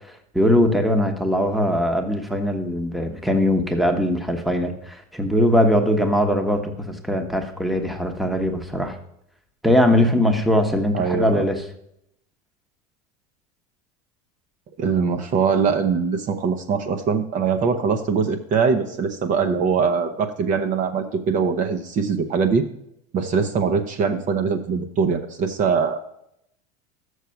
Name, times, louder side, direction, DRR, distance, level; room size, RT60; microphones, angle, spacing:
voice 1, 0.1-9.0 9.6-11.6, left 1 dB, ahead, 5 dB, 1.1 m, -21 dB
voice 2, 10.9-11.4 14.8-22.6 23.1-26.2, right 5 dB, 40° right, 6 dB, 0.9 m, -22 dB
6.7 x 6.4 x 5.7 m, 0.75 s
supercardioid pair, 110°, 19 cm